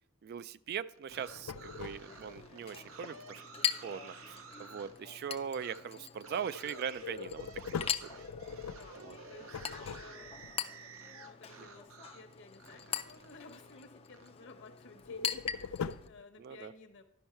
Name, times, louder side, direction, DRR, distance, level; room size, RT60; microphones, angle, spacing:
voice 1, 0.2-3.4 3.8-8.2 9.0-9.1 11.6-11.7 16.4-16.7, right 7 dB, 50° right, 15 dB, 0.3 m, -41 dB
sound 1, 0.9-5.0 5.5-5.8 6.2-12.3 12.6-14.3, right 5 dB, 85° right, 0.7 m, -53 dB
sound 2, 1.1-2.5 7.0-10.5 15.0-16.2, left 6 dB, 90° left, 0.4 m, -42 dB
Chink clink, 1.1-16.1, left 8 dB, 30° left, 0.4 m, -42 dB
voice 2, 8.7-17.0, left 3 dB, 60° left, 6 dB, 1.0 m, -55 dB
12.0 x 5.4 x 4.4 m, 0.72 s
head